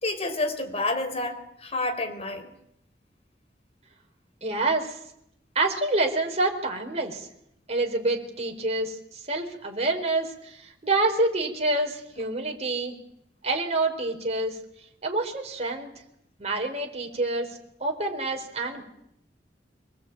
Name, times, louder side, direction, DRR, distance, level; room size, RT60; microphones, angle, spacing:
voice 1, 0.0-2.5, left 2 dB, 35° left, 6 dB, 4.3 m, -29 dB
voice 2, 4.4-5.0 5.5-7.3 7.7-12.9 13.4-14.6 15.0-15.9 16.4-18.8, right 2 dB, 40° right, 2 dB, 4.4 m, -27 dB
24.5 x 20.0 x 8.8 m, 0.76 s
head